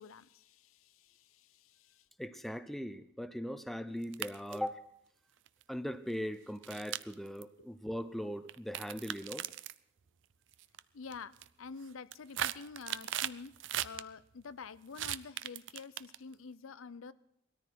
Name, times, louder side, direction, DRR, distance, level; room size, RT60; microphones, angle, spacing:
voice 1, 0.0-2.0 10.9-13.5 13.8-17.1, left 5 dB, 90° left, 15 dB, 0.6 m, -48 dB
voice 2, 2.2-4.8 5.7-9.5, equal, ahead, 11 dB, 0.6 m, -39 dB
sound 1, 4.0-4.7 5.5-5.6 6.6-7.4 8.5-9.8 10.5-10.8 11.1-11.5 11.9-14.0 14.9-16.3, right 11 dB, 65° right, 0.5 m, -38 dB
20.0 x 13.5 x 4.6 m, 0.75 s
head